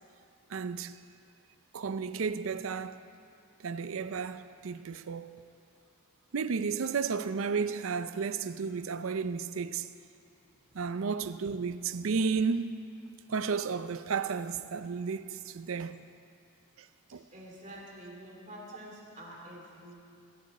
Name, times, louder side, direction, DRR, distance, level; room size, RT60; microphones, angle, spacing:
voice 1, 0.5-1.0 1.7-3.0 3.6-5.3 6.3-9.9 10.7-12.8 13.3-16.0 17.1-17.2, right 5 dB, 75° right, 0.5 m, -33 dB
voice 2, 17.3-20.0, equal, 35° right, 2.5 m, -48 dB
22.0 x 10.5 x 4.2 m
head